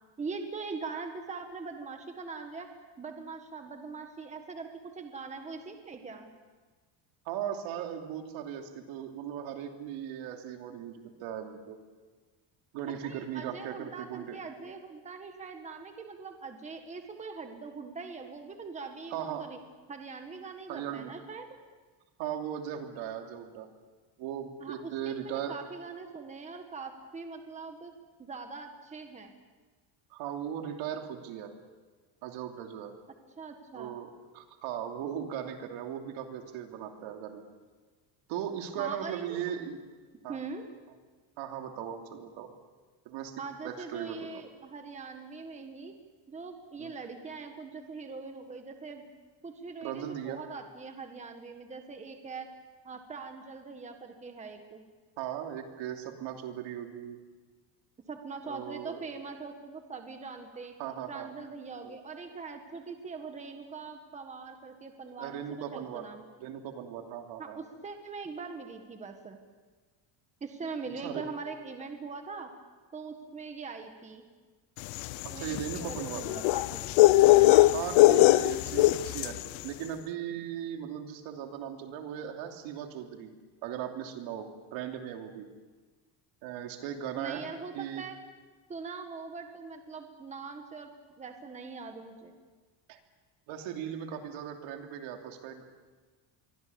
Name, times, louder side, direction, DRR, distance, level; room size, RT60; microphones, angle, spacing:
voice 1, 0.2-2.7 3.0-4.7 4.9-6.3 13.0-19.6 19.9-21.5 24.6-27.9 28.2-29.3 33.4-34.0 38.8-39.5 40.3-40.6 43.4-45.9 46.3-49.1 49.4-52.5 52.8-54.8 58.1-60.7 61.1-66.2 67.4-69.4 70.4-72.5 72.9-74.2 75.3-77.7 87.2-88.2 88.7-90.9 91.2-92.3, right 4 dB, 15° right, 5 dB, 1.6 m, -42 dB
voice 2, 7.2-11.8 12.7-14.4 19.1-19.4 20.7-21.2 22.2-23.7 24.2-25.6 30.1-31.5 32.2-32.9 33.7-37.4 38.3-39.8 40.2-40.4 41.4-42.5 43.0-44.5 46.8-46.9 49.8-50.4 55.2-57.2 58.4-59.0 60.8-61.3 61.8-61.9 65.0-66.1 66.4-67.6 71.0-71.2 75.2-76.2 77.7-79.3 79.6-83.3 83.6-85.5 86.4-87.4 87.7-88.0 92.9-93.0 93.5-95.6, right 9 dB, 75° right, 4 dB, 3.1 m, -38 dB
sound 1, 74.9-79.5, left 17 dB, 75° left, 0.7 m, -21 dB
27.5 x 23.5 x 7.1 m, 1.4 s
cardioid pair, 175°, 47 cm